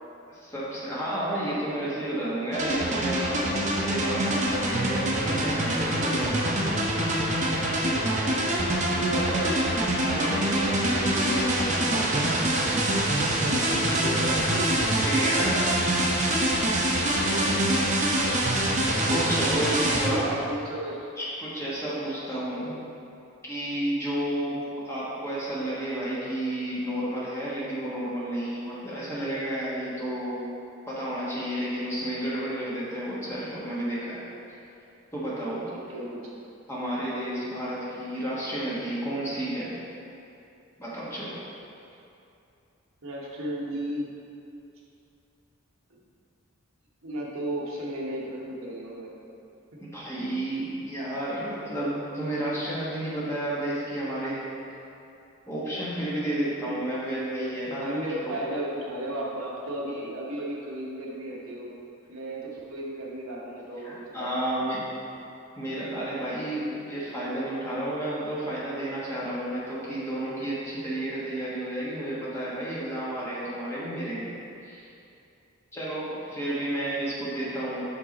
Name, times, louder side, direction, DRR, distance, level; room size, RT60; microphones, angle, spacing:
voice 1, 0.3-6.6 10.0-12.3 15.0-15.7 19.1-20.2 21.2-22.8 23.4-24.6 24.8-30.4 30.9-34.2 35.1-35.7 36.7-39.7 40.8-41.4 49.8-54.4 55.5-57.9 58.2-58.3 63.8-64.9 65.6-74.3 74.6-74.9 75.7-77.8, right 1 dB, 10° left, -9 dB, 1.3 m, -31 dB
sound 1, 2.5-20.1, right 1 dB, 35° right, 0.6 m, -25 dB
voice 2, 7.8-9.6 13.3-16.0 17.2-17.7 20.0-21.0 24.4-24.6 35.9-36.3 43.0-44.1 45.9-46.0 47.0-49.1 52.7-52.8 56.5-56.8 57.6-61.7 62.1-64.5 76.8-77.1, right 1 dB, 70° right, -3 dB, 1.0 m, -35 dB
5.9 x 5.2 x 4.1 m, 2.7 s
head